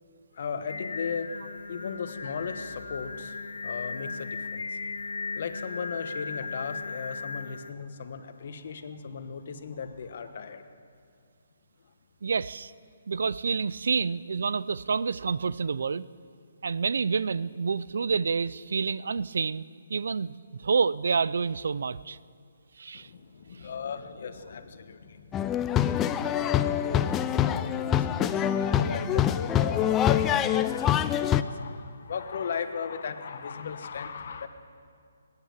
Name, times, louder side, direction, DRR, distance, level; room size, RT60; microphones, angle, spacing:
voice 1, 0.3-1.3 1.7-4.8 5.3-10.7 22.9-34.5, left 6 dB, 55° left, 9 dB, 1.2 m, -37 dB
Singing, 0.7-7.7, left 4 dB, 85° left, 0.6 m, -37 dB
voice 2, 12.2-12.7 13.1-16.1 16.6-20.3 20.6-22.2 22.8-23.1, right 5 dB, 70° right, 18 dB, 0.4 m, -28 dB
sound 1, 25.3-31.4, left 10 dB, 15° left, 0.4 m, -25 dB
19.5 x 9.7 x 7.4 m, 2.3 s
hypercardioid pair, 155°, 0 cm